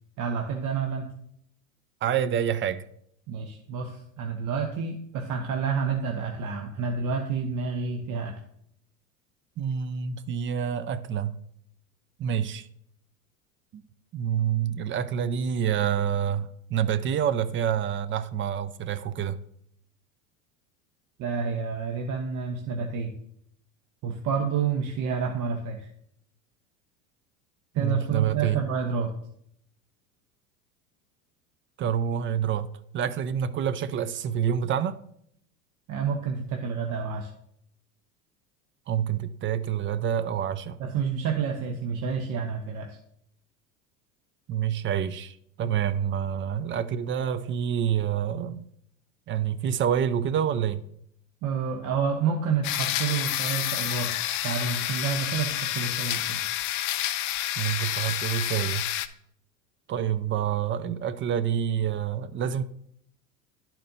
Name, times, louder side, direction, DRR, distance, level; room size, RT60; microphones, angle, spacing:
voice 1, 0.2-1.1 3.3-8.3 21.2-23.1 24.0-25.9 27.7-29.1 35.9-37.3 40.8-43.0 51.4-54.1 54.4-56.4, right 6 dB, 45° right, 1.0 m, -29 dB
voice 2, 2.0-2.8 9.6-11.3 12.2-12.7 13.7-13.8 14.1-19.4 27.7-28.7 31.8-35.0 38.9-40.8 44.5-48.6 49.3-50.8 57.6-58.9 59.9-62.6, right 9 dB, 30° right, 0.5 m, -27 dB
sound 1, 52.6-59.1, left 13 dB, 45° left, 0.6 m, -29 dB
12.0 x 4.4 x 2.7 m
hypercardioid pair, 80°, 43 cm